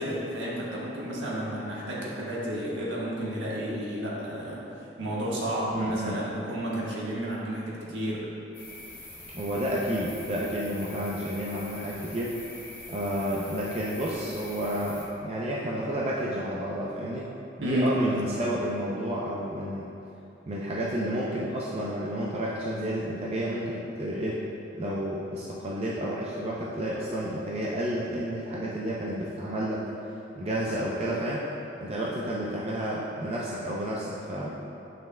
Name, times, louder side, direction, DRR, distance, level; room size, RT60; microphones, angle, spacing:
voice 1, 0.0-4.6 5.0-8.3 17.6-17.9, equal, 80° right, -6 dB, 1.4 m, -31 dB
voice 2, 5.7-6.2 9.3-12.3 12.9-17.3 17.6-19.9 20.5-24.4 24.8-29.9 30.4-31.4 31.8-34.6, right 1 dB, 35° right, -5 dB, 0.5 m, -31 dB
sound 1, 8.5-15.1, left 2 dB, 10° left, 1.1 m, -44 dB
9.2 x 5.9 x 2.2 m, 2.8 s
head